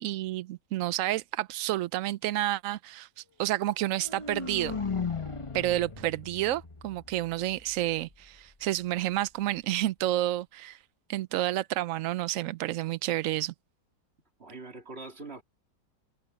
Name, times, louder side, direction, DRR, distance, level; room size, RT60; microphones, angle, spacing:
voice 1, 0.0-4.8 5.5-10.8 11.1-13.5, right 14 dB, 75° right, 0.7 m, -30 dB
sound 1, 3.8-7.8, left 5 dB, 20° left, 0.9 m, -36 dB
voice 2, 14.4-15.4, right 3 dB, 35° right, 2.9 m, -43 dB
omnidirectional pair, 1.9 m